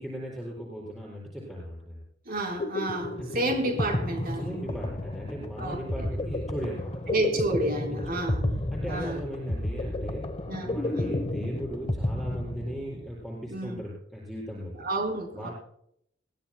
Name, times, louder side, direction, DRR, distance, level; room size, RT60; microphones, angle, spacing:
voice 1, 0.0-2.0 3.2-3.5 4.4-7.2 8.1-8.3 8.7-10.3 10.6-14.7 15.3-15.5, equal, ahead, -3 dB, 4.2 m, -37 dB
sound 1, 2.3-13.1, left 1 dB, 30° left, 1.0 m, -32 dB
voice 2, 2.3-4.8 5.6-6.1 7.1-8.5 8.9-9.2 10.5-11.2 13.5-13.8 14.8-15.5, right 1 dB, 50° right, 4 dB, 4.0 m, -31 dB
21.0 x 16.5 x 2.2 m, 0.70 s
head